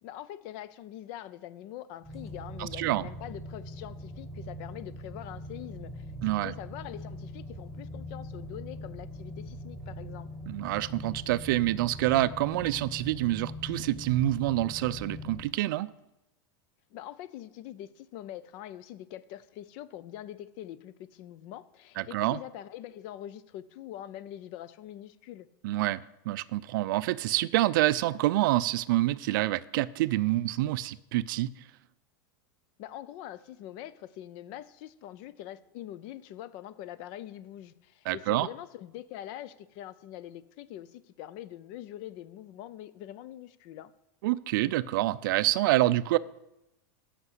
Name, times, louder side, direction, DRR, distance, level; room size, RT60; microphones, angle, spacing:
voice 1, 0.0-6.1 6.3-10.3 16.9-25.5 32.8-43.9, left 12 dB, 50° left, 0.5 m, -44 dB
sound 1, 2.0-15.4, equal, ahead, 1.6 m, -42 dB
voice 2, 2.6-3.1 6.2-6.5 10.5-15.9 22.0-22.4 25.6-31.5 38.1-38.5 44.2-46.2, right 16 dB, 70° right, 0.4 m, -27 dB
8.1 x 5.9 x 7.8 m
supercardioid pair, 145°, 11 cm